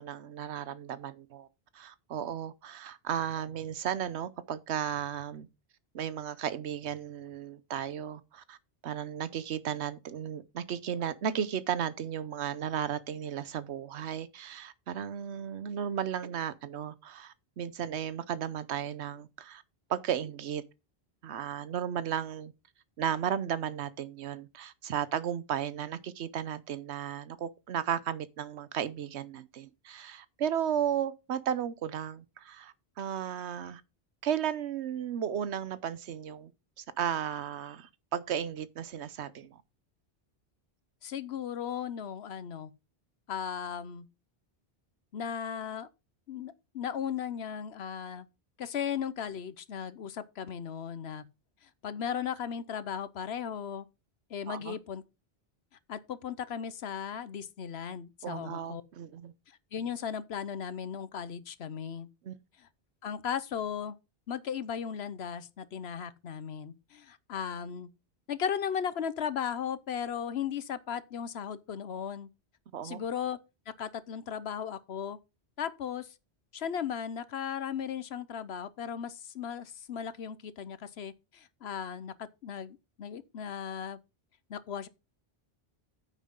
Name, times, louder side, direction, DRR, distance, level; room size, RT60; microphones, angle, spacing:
voice 1, 0.0-1.5 1.7-5.5 5.9-8.6 8.8-19.6 19.9-20.6 21.2-22.5 23.0-33.8 34.2-36.5 36.8-39.6 54.5-54.8 58.2-59.3 62.2-62.4 72.7-73.0, right 9 dB, 85° right, 1.0 m, -34 dB
voice 2, 41.0-42.7 43.3-44.1 45.1-45.9 46.3-48.3 48.6-51.2 51.8-53.9 54.3-55.0 55.9-58.8 59.5-62.1 62.6-62.7 63.0-64.0 64.3-67.9 68.3-72.3 72.8-73.4 73.7-75.2 75.6-76.1 76.5-84.0 84.5-84.9, left 8 dB, 75° left, 1.1 m, -36 dB
9.4 x 7.2 x 3.7 m
omnidirectional pair, 1.1 m